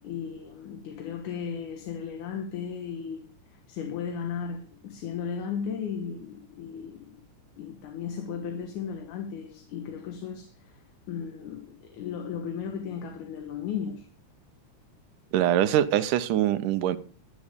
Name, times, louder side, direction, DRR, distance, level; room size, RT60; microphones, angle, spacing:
voice 1, 0.0-7.2 7.6-14.1, left 7 dB, 75° left, 2.8 m, -36 dB
voice 2, 15.3-17.0, right 11 dB, 85° right, 2.4 m, -23 dB
12.0 x 11.0 x 5.1 m
omnidirectional pair, 3.6 m